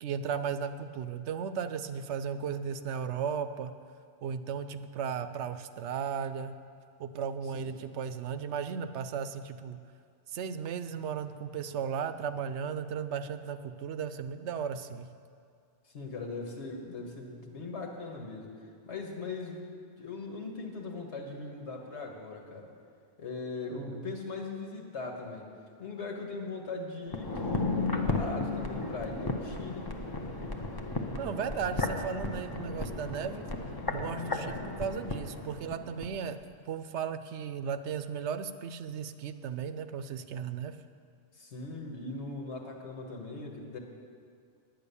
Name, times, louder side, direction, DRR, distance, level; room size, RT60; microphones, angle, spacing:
voice 1, 0.0-3.7 4.2-6.5 7.0-9.8 10.3-15.1 23.7-24.2 31.2-33.4 33.9-36.4 36.7-40.8, right 7 dB, 75° right, 11 dB, 0.9 m, -35 dB
voice 2, 7.5-7.9 15.9-18.5 18.9-19.6 20.0-22.7 23.2-25.5 25.8-29.9 34.2-34.6 41.3-43.8, left 3 dB, 70° left, 1 dB, 1.7 m, -40 dB
sound 1, 27.1-36.1 36.4-36.5, left 3 dB, 25° left, 0.7 m, -34 dB
10.0 x 9.2 x 6.9 m, 2.3 s
omnidirectional pair, 1.2 m